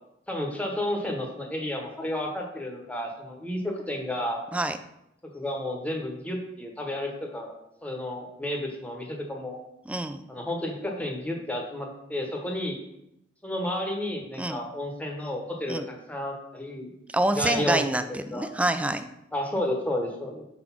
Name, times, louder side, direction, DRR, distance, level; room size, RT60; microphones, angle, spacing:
voice 1, 0.3-4.4 5.3-7.5 7.8-9.6 10.3-12.8 13.4-16.9 17.3-17.8 18.3-18.5 19.3-20.4, left 1 dB, 10° left, 1 dB, 0.9 m, -31 dB
voice 2, 9.9-10.2 14.4-14.6 15.7-15.9 17.1-19.1, right 1 dB, 5° right, 10 dB, 0.3 m, -26 dB
4.9 x 4.0 x 5.8 m, 0.82 s
head